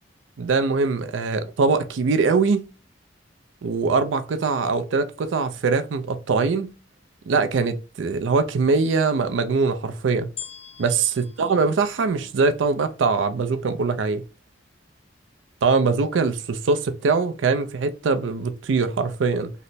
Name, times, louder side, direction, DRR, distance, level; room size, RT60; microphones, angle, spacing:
voice 1, 0.4-2.7 3.6-6.7 7.3-10.3 10.8-14.2 15.6-19.5, right 4 dB, 90° right, 0.4 m, -22 dB
sound 1, 10.4-12.8 13.4-13.5, left 8 dB, 30° left, 0.5 m, -42 dB
3.2 x 2.0 x 4.0 m
head